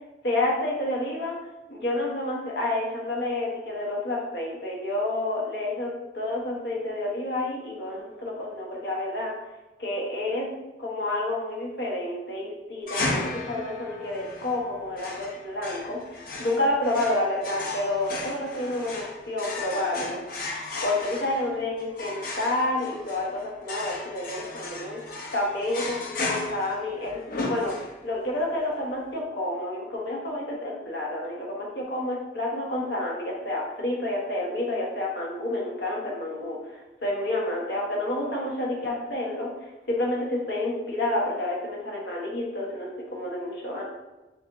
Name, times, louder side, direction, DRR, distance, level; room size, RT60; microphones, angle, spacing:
voice 1, 0.2-1.4 1.7-9.3 9.8-10.5 10.8-20.2 20.8-25.0 25.3-27.8 28.0-43.8, left 1 dB, 75° left, -2 dB, 1.3 m, -29 dB
sound 1, 12.9-28.2, left 2 dB, 55° left, 0.7 m, -35 dB
6.8 x 2.6 x 2.6 m, 1.1 s
head